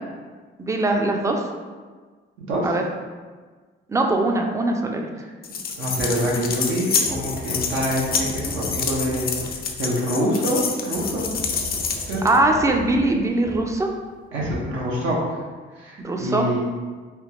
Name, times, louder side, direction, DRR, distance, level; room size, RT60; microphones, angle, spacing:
voice 1, 0.6-1.4 2.6-2.8 3.9-5.1 12.2-13.9 16.0-16.5, right 2 dB, 15° right, 2 dB, 0.4 m, -21 dB
voice 2, 2.4-2.7 5.2-5.3 5.8-9.3 9.8-11.3 12.0-12.2 14.3-15.4 15.7-16.6, equal, 80° right, -4 dB, 0.8 m, -25 dB
sound 1, 5.4-12.4, left 5 dB, 50° left, 0.4 m, -27 dB
sound 2, 7.0-10.0 10.9-14.3, left 1 dB, 60° right, 1.2 m, -37 dB
3.3 x 2.2 x 3.0 m, 1.4 s
cardioid pair, 90°, 20 cm